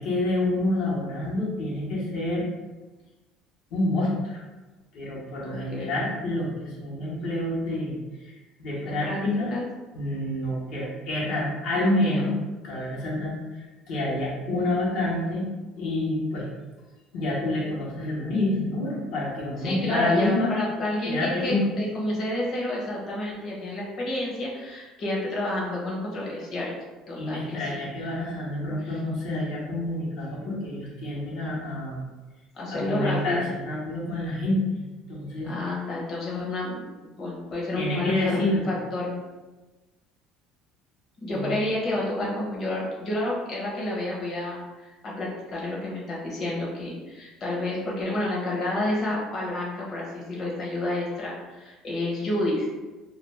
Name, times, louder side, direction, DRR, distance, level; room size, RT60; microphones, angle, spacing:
voice 1, 0.0-2.4 3.7-4.3 4.9-7.9 8.2-9.6 9.9-12.4 12.6-13.3 13.9-15.5 15.8-16.5 17.1-20.5 21.0-21.7 27.2-32.0 32.7-35.5 37.7-38.7 41.3-41.5, left 1 dB, 75° left, -5 dB, 0.9 m, -28 dB
voice 2, 5.4-5.9 8.8-9.2 9.5-9.6 11.7-12.2 19.6-26.7 27.1-28.1 28.8-29.0 32.5-33.5 35.4-36.8 37.2-39.2 41.2-52.7, left 1 dB, 45° left, -5 dB, 0.9 m, -30 dB
2.4 x 2.3 x 3.2 m, 1.2 s
supercardioid pair, 105°, 0 cm